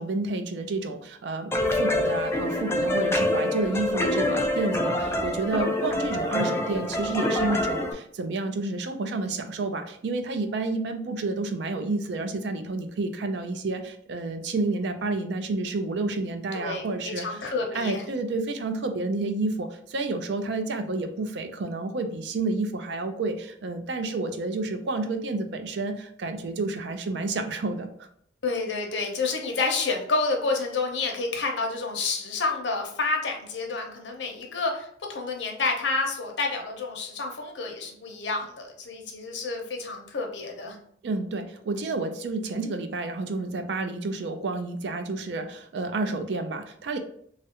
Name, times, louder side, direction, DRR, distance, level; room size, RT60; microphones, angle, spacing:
voice 1, 0.0-17.4 17.7-28.1 41.0-47.0, right 3 dB, 70° right, 7 dB, 0.4 m, -30 dB
sound 1, 1.5-7.9, left 1 dB, 15° left, 0.3 m, -26 dB
voice 2, 16.5-18.0 28.4-40.8, left 3 dB, 80° left, 2 dB, 0.7 m, -29 dB
3.1 x 2.4 x 2.8 m, 0.66 s
head